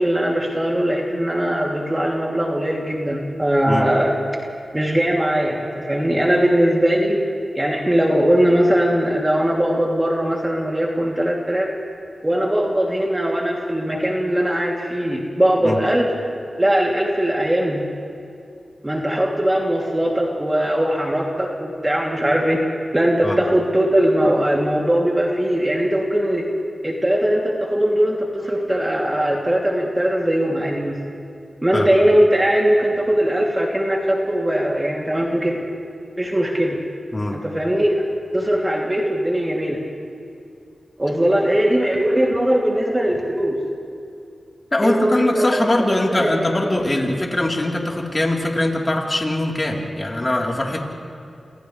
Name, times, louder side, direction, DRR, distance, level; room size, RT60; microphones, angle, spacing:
voice 1, 0.0-4.1 4.7-7.3 7.5-11.7 12.2-16.1 16.6-17.8 18.8-22.6 22.9-26.4 26.8-30.9 31.6-35.6 36.2-36.8 37.3-38.0 38.3-39.8 41.0-43.6 44.8-45.7 46.1-46.8, equal, 20° right, -2 dB, 3.0 m, -20 dB
voice 2, 44.7-50.8, left 1 dB, 35° left, -2 dB, 4.0 m, -22 dB
28.5 x 28.0 x 3.4 m, 2.5 s
cardioid pair, 50°, 0 cm